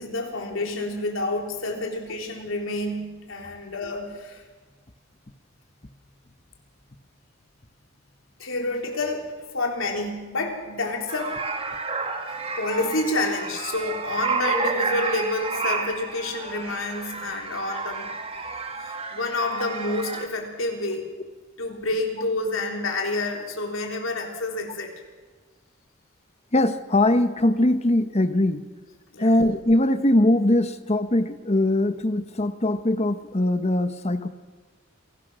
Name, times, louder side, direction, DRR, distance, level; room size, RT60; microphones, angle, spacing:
voice 1, 0.0-4.4 8.4-11.4 12.3-18.1 18.8-21.1 21.6-24.9 29.1-29.3, left 2 dB, 80° left, 2 dB, 3.8 m, -29 dB
sound 1, 11.1-20.3, right 4 dB, 30° right, 1.8 m, -30 dB
voice 2, 26.5-28.6 29.2-34.3, left 1 dB, 35° left, 11 dB, 1.1 m, -21 dB
28.0 x 18.5 x 6.3 m, 1.4 s
head